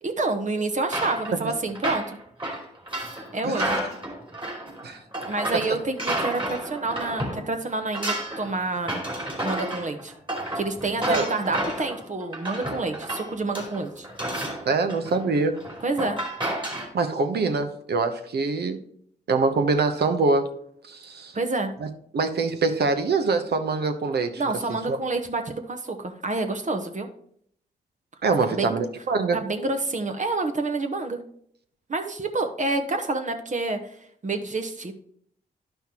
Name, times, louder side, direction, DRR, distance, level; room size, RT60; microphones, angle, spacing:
voice 1, 0.0-2.2 3.3-3.8 5.3-8.9 9.4-10.1 10.5-14.1 15.8-16.2 21.3-21.7 24.4-27.1 28.5-28.8 29.3-31.2 31.9-34.0 34.2-34.9, right 3 dB, 45° right, 6 dB, 1.0 m, -28 dB
sound 1, 0.9-7.4 7.7-16.9, right 1 dB, 25° right, 3.1 m, -31 dB
voice 2, 3.4-3.8 4.8-5.0 11.1-11.3 14.7-15.6 16.9-18.8 19.3-20.5 20.9-21.3 21.8-21.9 22.1-24.4 24.7-25.0 28.2-29.4, right 4 dB, 65° right, 8 dB, 0.9 m, -24 dB
10.5 x 5.6 x 2.9 m, 0.66 s
supercardioid pair, 40°, 18 cm